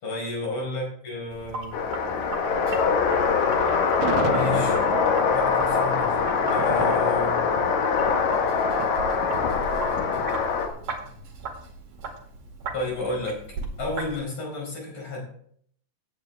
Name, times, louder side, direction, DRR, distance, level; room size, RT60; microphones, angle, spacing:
voice 1, 0.0-1.8 4.3-4.8 5.3-7.5 12.7-13.4 13.8-15.2, left 2 dB, 35° left, -2 dB, 5.4 m, -32 dB
Sink (filling or washing), 1.3-14.2, right 3 dB, 50° right, 3.0 m, -38 dB
sound 1, 1.7-10.7, left 5 dB, 60° left, 2.4 m, -23 dB
Thunder, 3.6-10.8, right 10 dB, 75° right, 1.8 m, -36 dB
16.5 x 9.5 x 3.4 m, 0.63 s
omnidirectional pair, 4.1 m